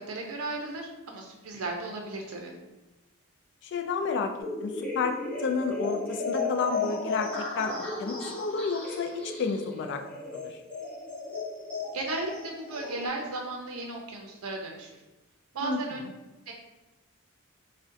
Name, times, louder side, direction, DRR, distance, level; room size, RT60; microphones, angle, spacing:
voice 1, 0.0-2.5 11.9-15.0 15.5-16.0 16.5-16.6, right 2 dB, 80° right, 1 dB, 0.5 m, -35 dB
voice 2, 3.6-4.3 4.6-10.0 10.3-10.6 15.6-16.1, left 4 dB, 55° left, 6 dB, 0.3 m, -31 dB
sound 1, 4.4-13.1, left 3 dB, 5° left, 0.5 m, -35 dB
2.5 x 2.1 x 3.7 m, 1.0 s
head